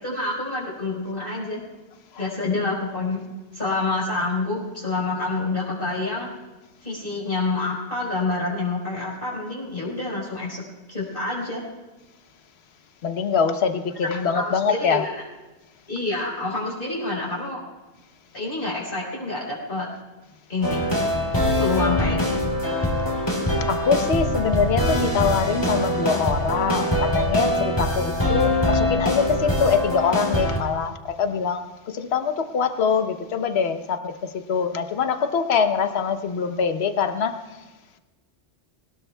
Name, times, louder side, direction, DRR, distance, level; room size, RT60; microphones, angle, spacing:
voice 1, 0.0-1.6 2.2-3.2 3.5-6.3 6.8-11.6 14.2-15.2 15.9-17.6 18.3-19.9 20.5-20.9 21.6-22.5, left 3 dB, 50° left, -5 dB, 4.7 m, -27 dB
voice 2, 13.0-15.0 23.0-23.3 23.7-34.1 34.5-37.4, left 6 dB, 65° left, 8 dB, 1.2 m, -24 dB
sound 1, 20.6-30.6, left 1 dB, 20° left, 3.1 m, -23 dB
21.5 x 19.5 x 2.3 m, 1.2 s
omnidirectional pair, 1.2 m